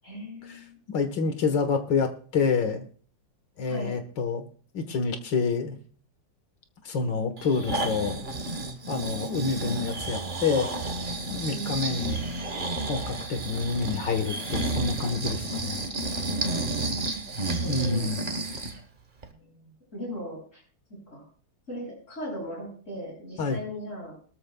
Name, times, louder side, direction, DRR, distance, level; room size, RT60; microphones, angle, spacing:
voice 1, 0.0-0.8 3.6-4.0 11.5-12.1 16.7-18.2 19.2-20.6 20.9-21.3 21.7-24.1, equal, 40° left, -2 dB, 8.3 m, -39 dB
voice 2, 0.9-2.9 3.6-4.5 4.7-5.8 6.8-8.2 8.9-10.7 11.3-12.2 12.9-15.8 17.6-18.2 23.4-23.6, left 4 dB, 75° left, 7 dB, 2.0 m, -28 dB
Breathing, 7.4-18.8 19.2-19.3, right 2 dB, 30° right, 1.1 m, -31 dB
20.5 x 13.5 x 2.3 m, 0.44 s
omnidirectional pair, 2.0 m